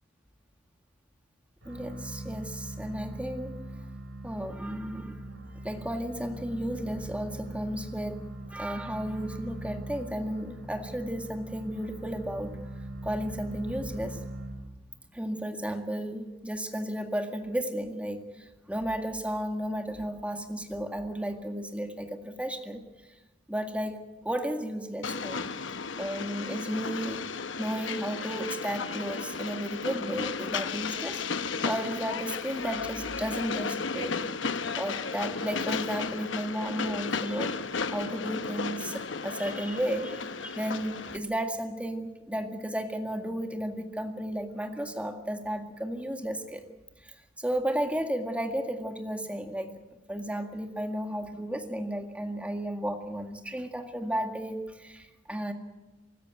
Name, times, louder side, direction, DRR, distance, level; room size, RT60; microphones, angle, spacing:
sound 1, 1.6-15.0, right 1 dB, 85° right, 6.8 m, -41 dB
voice 1, 1.7-3.6 4.2-5.2 5.6-8.2 8.5-12.6 13.0-14.2 15.1-18.2 18.7-22.8 23.5-24.0 24.2-25.4 26.0-27.2 27.6-31.2 31.6-34.3 34.8-37.6 37.9-46.7 47.4-49.7 50.1-55.5, equal, 5° right, 5 dB, 1.9 m, -33 dB
Train, 25.0-41.2, left 5 dB, 75° left, 0.9 m, -34 dB
25.0 x 13.5 x 9.2 m, 1.1 s
head